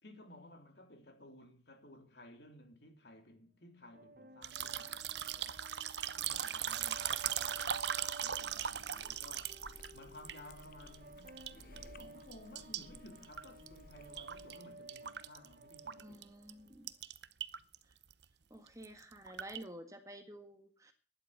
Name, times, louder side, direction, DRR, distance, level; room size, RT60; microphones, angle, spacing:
voice 1, 0.0-5.6 6.2-7.7 8.2-9.6 9.9-16.2, left 1 dB, 65° left, 3.3 m, -57 dB
sound 1, 3.9-17.0, right 1 dB, 50° right, 1.1 m, -56 dB
sound 2, 4.4-11.0 11.3-12.0 12.3-14.6 14.9-16.2 16.5-16.6 16.9-17.8 18.0-18.2 18.7-19.6, right 9 dB, 70° right, 0.8 m, -39 dB
Chewing mastication, 8.4-14.6, left 2 dB, 50° left, 0.8 m, -58 dB
voice 2, 16.0-16.9 18.5-20.9, right 1 dB, 15° right, 1.8 m, -51 dB
12.0 x 11.0 x 6.5 m
head